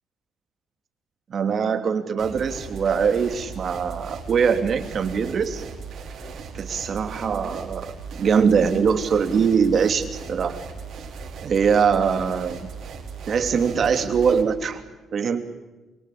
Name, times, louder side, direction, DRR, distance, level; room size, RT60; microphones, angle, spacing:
voice 1, 1.3-5.6 6.5-10.6 11.4-12.7 13.3-14.8 15.1-15.4, right 6 dB, 55° right, 7 dB, 2.9 m, -22 dB
sound 1, 2.2-14.4, right 5 dB, 70° right, 5.1 m, -38 dB
25.0 x 22.5 x 8.6 m, 1.1 s
cardioid pair, 90°, 0 cm